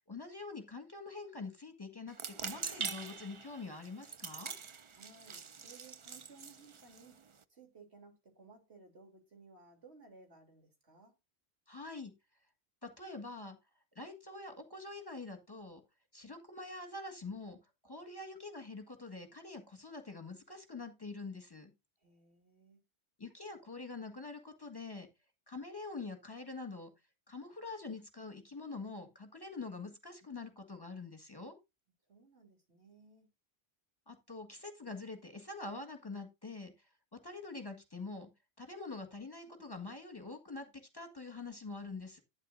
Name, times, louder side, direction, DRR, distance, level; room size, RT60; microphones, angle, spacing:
voice 1, 0.1-4.5 11.7-12.1 12.8-13.6 13.9-15.8 16.1-17.6 17.8-21.7 23.2-25.1 25.5-26.9 27.3-31.6 34.1-38.3 38.6-42.2, left 3 dB, 20° left, 1.7 m, -45 dB
sound 1, 2.1-7.4, right 6 dB, 40° right, 0.5 m, -44 dB
voice 2, 4.9-7.2 7.5-11.2 22.0-22.8 32.1-33.3, right 4 dB, 80° right, 3.6 m, -59 dB
11.5 x 9.5 x 2.6 m
omnidirectional pair, 1.1 m